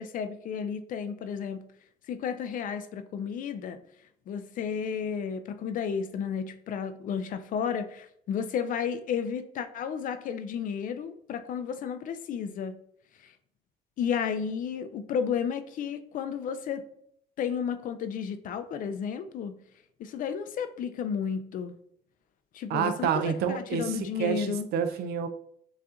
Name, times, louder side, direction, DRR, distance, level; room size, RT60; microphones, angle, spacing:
voice 1, 0.0-1.7 2.1-3.8 4.3-12.8 14.0-16.9 17.4-19.6 20.0-21.7 22.5-24.7, left 7 dB, 55° left, 9 dB, 0.4 m, -32 dB
voice 2, 22.7-25.3, right 8 dB, 70° right, 9 dB, 0.4 m, -29 dB
6.8 x 2.5 x 2.4 m, 0.69 s
cardioid pair, 110°, 17 cm